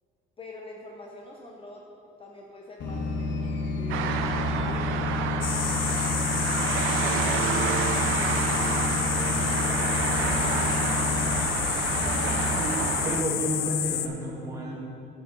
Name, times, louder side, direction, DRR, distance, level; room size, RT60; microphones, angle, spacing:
voice 1, 0.4-1.8 2.2-6.5 7.0-8.9 9.3-11.0, left 2 dB, 25° left, -1 dB, 0.8 m, -45 dB
sound 1, 2.8-12.6, left 3 dB, 65° left, 1.2 m, -30 dB
sound 2, 3.9-13.2, right 7 dB, 90° right, 0.7 m, -29 dB
sound 3, 5.4-14.1, left 11 dB, 80° left, 0.6 m, -30 dB
voice 2, 12.6-14.7, right 1 dB, 15° right, -5 dB, 2.4 m, -31 dB
9.3 x 8.4 x 4.0 m, 2.6 s
cardioid pair, 115°, 20 cm